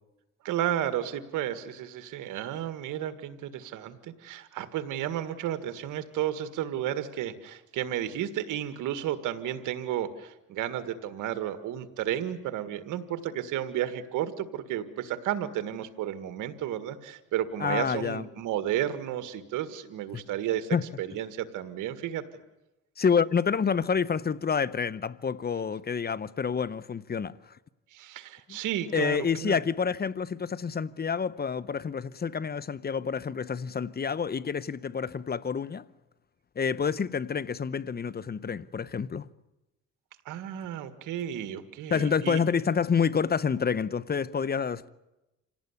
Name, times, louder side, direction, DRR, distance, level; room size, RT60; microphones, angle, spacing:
voice 1, 0.4-22.2 27.9-29.6 40.3-42.4, right 11 dB, 90° right, 1.8 m, -32 dB
voice 2, 17.6-18.2 20.1-20.2 20.7-20.8 23.0-27.4 28.9-35.8 36.6-39.3 41.9-44.9, left 6 dB, 30° left, 0.9 m, -28 dB
27.0 x 18.0 x 9.8 m
cardioid pair, 90°, 30 cm